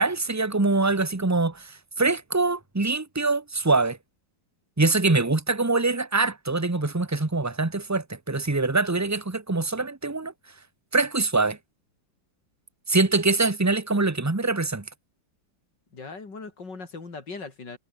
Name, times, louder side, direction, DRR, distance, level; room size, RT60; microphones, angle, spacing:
voice 1, 0.0-4.0 4.8-10.3 10.9-11.6 12.9-14.8, right 3 dB, 10° right, 0.9 m, -24 dB
voice 2, 15.9-17.8, left 4 dB, 60° left, 4.4 m, -39 dB
omnidirectional pair, 2.2 m